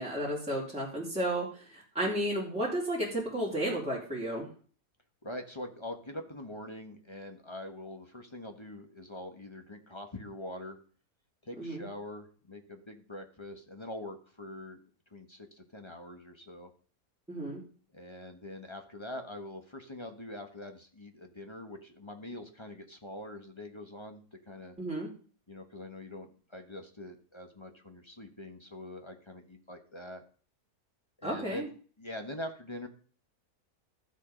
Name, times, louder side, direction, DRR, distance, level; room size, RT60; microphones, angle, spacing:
voice 1, 0.0-4.5 11.6-11.9 17.3-17.6 24.8-25.1 31.2-31.7, right 1 dB, 5° right, -5 dB, 3.2 m, -33 dB
voice 2, 5.2-10.8 11.4-14.8 15.1-16.7 17.9-24.7 25.5-30.2 31.2-31.7 32.0-32.9, left 1 dB, 20° left, 5 dB, 1.3 m, -44 dB
13.0 x 7.4 x 5.2 m, 0.42 s
omnidirectional pair, 1.6 m